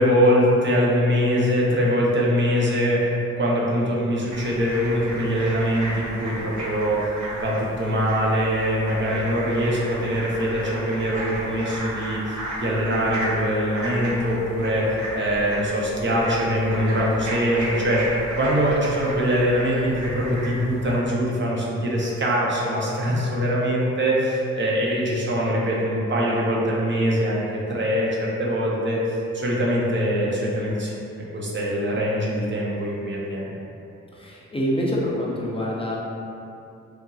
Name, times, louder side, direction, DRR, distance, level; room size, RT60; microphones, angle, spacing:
voice 1, 0.0-30.9 31.3-33.5, equal, 40° right, -5 dB, 0.6 m, -23 dB
sound 1, 4.3-21.0, right 1 dB, 85° right, 0.8 m, -34 dB
voice 2, 34.1-36.0, equal, 20° left, -4 dB, 0.5 m, -26 dB
2.9 x 2.5 x 2.3 m, 2.7 s
cardioid pair, 75°, 29 cm